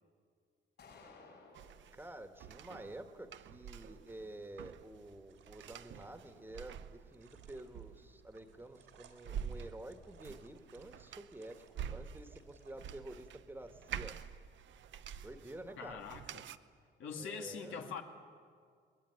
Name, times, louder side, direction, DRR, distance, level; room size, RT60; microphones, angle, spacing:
sound 1, 0.8-1.8, left 3 dB, 60° left, 7.5 m, -56 dB
sound 2, 1.5-16.6, right 8 dB, 70° right, 0.9 m, -48 dB
voice 1, 1.9-14.2 15.2-16.0 17.2-17.8, right 1 dB, 10° right, 7 dB, 1.7 m, -50 dB
sound 3, 5.3-12.7, right 7 dB, 85° right, 3.3 m, -66 dB
voice 2, 15.8-16.4 17.0-18.0, left 5 dB, 80° left, 2 dB, 2.4 m, -43 dB
23.5 x 20.0 x 9.9 m, 2.1 s
cardioid pair, 90°, 20 cm